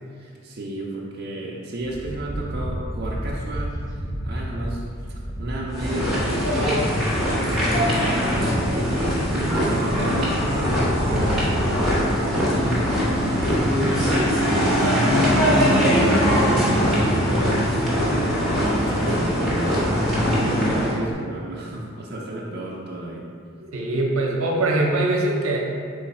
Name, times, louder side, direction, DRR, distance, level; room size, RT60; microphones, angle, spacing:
voice 1, 0.1-3.8 4.2-4.8 5.4-6.9 7.3-10.8 11.1-23.3, right 1 dB, 45° right, -4 dB, 0.4 m, -32 dB
sound 1, 1.8-7.3 7.9-8.0 8.2-13.7, equal, 15° left, 0.5 m, -33 dB
sound 2, 5.7-20.9, equal, ahead, 0.9 m, -21 dB
voice 2, 23.6-25.6, right 2 dB, 75° right, -1 dB, 0.7 m, -22 dB
3.9 x 3.2 x 4.1 m, 2.4 s
head